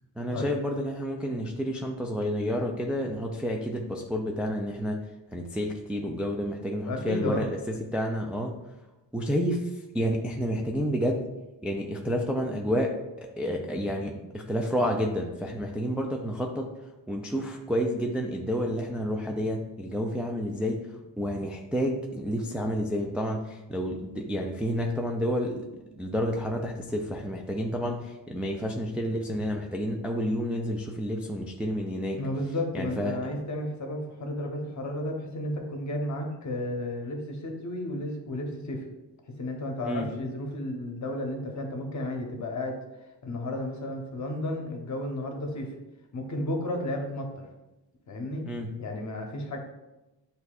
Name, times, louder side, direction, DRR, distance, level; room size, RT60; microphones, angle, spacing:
voice 1, 0.2-5.0 5.3-8.5 9.1-11.3 11.6-16.7 17.1-25.6 25.9-32.2 32.7-33.2 39.8-40.1 48.5-48.7, equal, 5° right, 0 dB, 0.3 m, -30 dB
voice 2, 6.8-7.4 32.2-38.9 39.4-42.8 43.2-45.7 46.1-47.4 48.1-48.5 48.8-49.6, left 1 dB, 45° left, 2 dB, 1.0 m, -33 dB
7.9 x 2.8 x 2.4 m, 1.0 s
cardioid pair, 105°, 42 cm